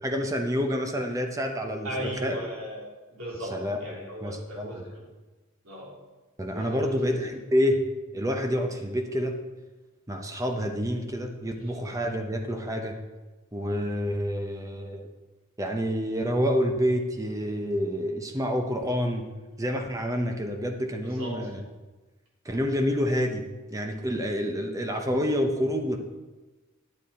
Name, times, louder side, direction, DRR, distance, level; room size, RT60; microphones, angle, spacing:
voice 1, 0.0-2.4 3.5-3.8 4.2-4.9 6.4-7.8 8.1-9.3 10.1-13.0 13.5-15.1 15.6-19.3 19.6-21.6 22.4-26.0, equal, 15° right, 4 dB, 0.9 m, -28 dB
voice 2, 1.8-2.8 3.1-5.0 5.6-5.9 6.5-7.0 21.1-21.4, equal, 75° right, -4 dB, 3.4 m, -37 dB
9.3 x 8.4 x 4.2 m, 1.2 s
head